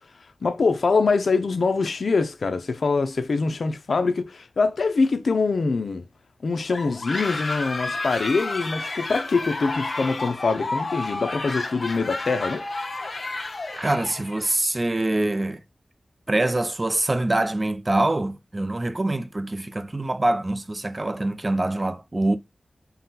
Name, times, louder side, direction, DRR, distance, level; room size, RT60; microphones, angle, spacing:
voice 1, 0.4-6.0 6.4-12.6, left 4 dB, 80° left, 0.5 m, -24 dB
sound 1, 6.7-14.6, left 2 dB, 60° left, 0.9 m, -31 dB
voice 2, 13.7-15.6 16.3-22.4, right 2 dB, 35° right, 0.5 m, -24 dB
4.0 x 2.2 x 3.9 m
wide cardioid pair, 60°, 0 cm